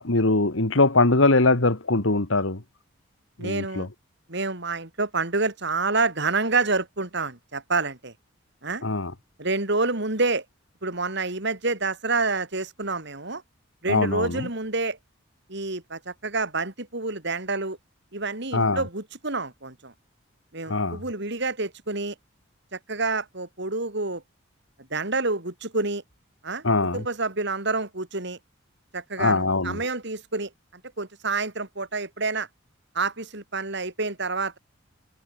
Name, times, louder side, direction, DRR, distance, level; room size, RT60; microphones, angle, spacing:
voice 1, 0.0-2.6 3.4-3.9 8.8-9.1 13.9-14.5 18.5-18.8 20.7-21.0 26.6-27.0 29.2-29.8, left 2 dB, 75° left, 2.0 m, -22 dB
voice 2, 3.4-3.9 4.3-8.1 8.6-8.8 9.4-10.4 10.8-13.4 13.8-15.0 15.5-17.8 18.1-19.9 20.5-22.1 22.7-24.2 24.9-26.0 26.4-26.6 26.9-28.4 28.9-30.5 31.0-32.5 32.9-34.6, right 3 dB, 60° right, 3.8 m, -28 dB
head